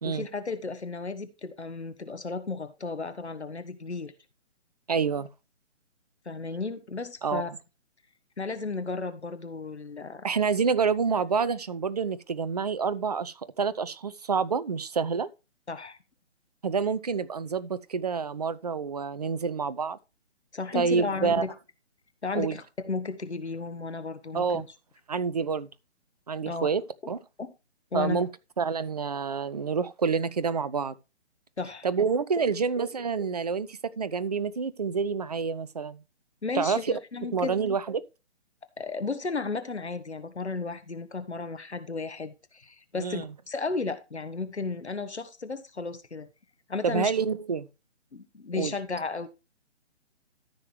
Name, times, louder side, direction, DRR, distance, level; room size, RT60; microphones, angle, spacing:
voice 1, 0.0-4.1 6.2-7.5 8.4-10.2 15.7-16.0 20.5-21.5 22.2-24.7 26.4-26.7 27.4-27.5 27.9-28.2 31.6-31.9 36.4-37.6 38.8-46.3 46.7-47.1 48.1-49.3, left 4 dB, 70° left, 1.5 m, -34 dB
voice 2, 4.9-5.3 7.2-7.6 10.2-15.3 16.6-20.0 20.7-21.5 22.3-22.6 24.3-24.7 25.1-25.7 26.3-26.8 27.1-27.2 27.9-28.3 28.6-31.0 31.8-36.0 36.5-36.8 37.3-38.0 43.0-43.3 46.8-47.7 48.5-48.7, right 5 dB, 35° right, 0.5 m, -28 dB
13.5 x 6.5 x 3.3 m
figure-of-eight pair, 140°, 35 cm